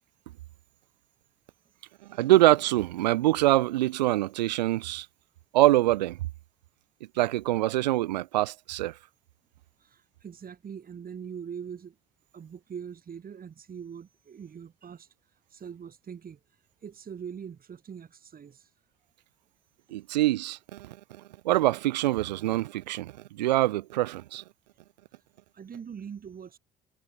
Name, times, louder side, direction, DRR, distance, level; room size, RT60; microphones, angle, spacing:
voice 1, 2.1-5.1 5.5-6.2 7.2-8.9 19.9-21.0 21.4-24.4, right 16 dB, 85° right, 1.1 m, -24 dB
voice 2, 9.8-12.0 12.3-18.7 25.1-25.2 25.5-26.6, right 7 dB, 45° right, 6.5 m, -42 dB
hypercardioid pair, 60°, 21 cm